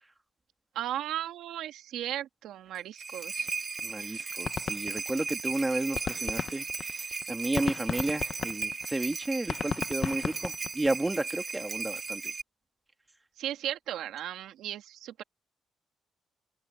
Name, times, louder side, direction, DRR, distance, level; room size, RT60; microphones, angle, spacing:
voice 1, 0.7-3.5 4.0-4.4 13.4-15.2, right 11 dB, 80° right, 2.3 m, -36 dB
sound 1, 2.7-12.4, right 4 dB, 35° right, 2.1 m, -36 dB
sound 2, 3.5-3.6 3.8-3.9 4.2-5.5 5.8-11.1, left 6 dB, 50° left, 0.9 m, -35 dB
voice 2, 3.8-12.3, right 2 dB, 15° right, 2.0 m, -32 dB
open air
cardioid pair, 90°, 0 cm